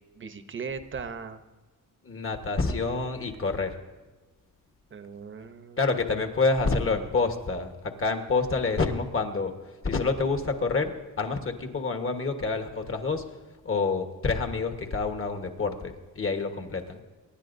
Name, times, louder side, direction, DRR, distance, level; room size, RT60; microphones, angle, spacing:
voice 1, 0.1-1.4 4.9-5.8, right 5 dB, 35° right, 10 dB, 0.8 m, -38 dB
voice 2, 2.0-3.8 5.8-9.5 9.8-13.2 13.6-17.0, left 4 dB, 40° left, 6 dB, 1.3 m, -28 dB
25.0 x 10.5 x 2.6 m, 1.2 s
wide cardioid pair, 125°, 33 cm